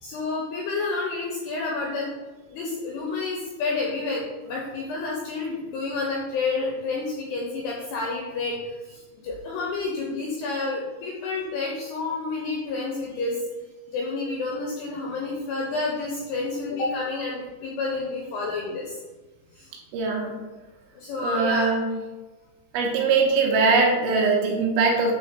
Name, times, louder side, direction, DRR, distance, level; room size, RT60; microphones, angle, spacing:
voice 1, 0.0-2.1 2.5-13.4 13.9-19.0 19.6-19.7 21.0-21.7, left 3 dB, 85° left, -2 dB, 2.4 m, -29 dB
voice 2, 19.9-20.4 21.2-21.9 22.7-25.2, right 4 dB, 80° right, 0 dB, 3.3 m, -21 dB
8.7 x 3.5 x 3.7 m, 1.2 s
omnidirectional pair, 5.6 m